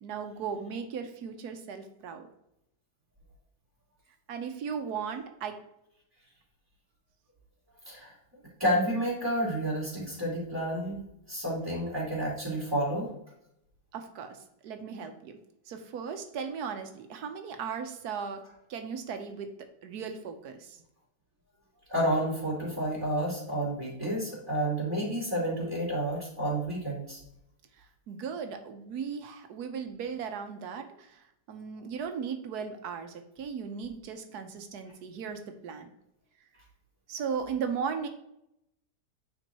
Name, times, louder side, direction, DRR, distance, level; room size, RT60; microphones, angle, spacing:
voice 1, 0.0-2.3 4.3-5.6 13.9-14.4 14.6-15.4 15.7-18.4 18.7-19.5 19.8-20.8 28.1-35.9 37.1-38.1, right 6 dB, 75° right, 6 dB, 1.3 m, -37 dB
voice 2, 8.6-11.0 11.3-13.1 21.9-27.2, right 1 dB, 15° right, -10 dB, 2.5 m, -30 dB
8.9 x 4.5 x 2.9 m, 0.81 s
omnidirectional pair, 1.7 m